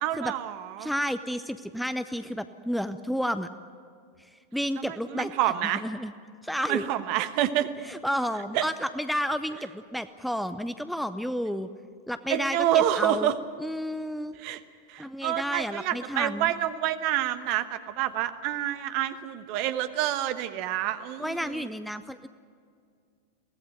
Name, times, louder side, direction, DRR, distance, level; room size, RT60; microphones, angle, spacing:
voice 1, 0.0-0.9 4.8-5.8 6.7-7.7 8.5-8.6 12.3-13.3 14.3-14.6 14.9-21.7, right 12 dB, 45° right, 11 dB, 1.2 m, -28 dB
voice 2, 0.8-3.5 4.5-6.1 6.4-6.8 7.8-11.7 12.1-13.3 13.6-14.3 15.0-16.5 21.2-22.3, equal, ahead, 11 dB, 0.7 m, -31 dB
23.5 x 17.5 x 9.2 m, 2.2 s
figure-of-eight pair, 90°, 0 cm